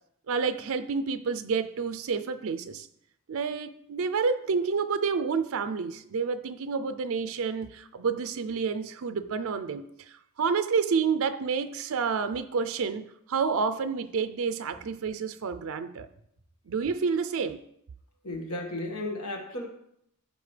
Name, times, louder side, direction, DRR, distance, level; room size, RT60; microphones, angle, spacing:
voice 1, 0.3-2.9 3.3-16.1 16.7-17.7, right 5 dB, 65° right, 11 dB, 0.5 m, -29 dB
voice 2, 18.2-19.7, left 1 dB, 85° left, 2 dB, 1.7 m, -34 dB
14.5 x 5.1 x 3.3 m, 0.74 s
head